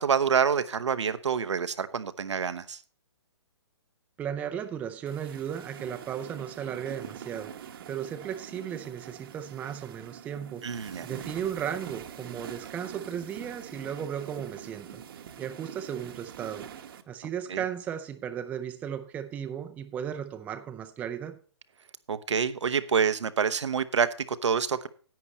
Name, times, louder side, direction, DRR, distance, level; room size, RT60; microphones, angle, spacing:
voice 1, 0.0-2.8 10.6-11.1 17.5-17.6 22.1-24.9, right 6 dB, 85° right, 0.9 m, -27 dB
voice 2, 4.2-10.7 11.0-15.0 15.4-16.7 17.1-21.4, right 9 dB, 10° right, 0.5 m, -35 dB
sound 1, 5.1-17.0, right 8 dB, 55° right, 1.0 m, -44 dB
10.5 x 8.5 x 4.2 m
hypercardioid pair, 150°, 15 cm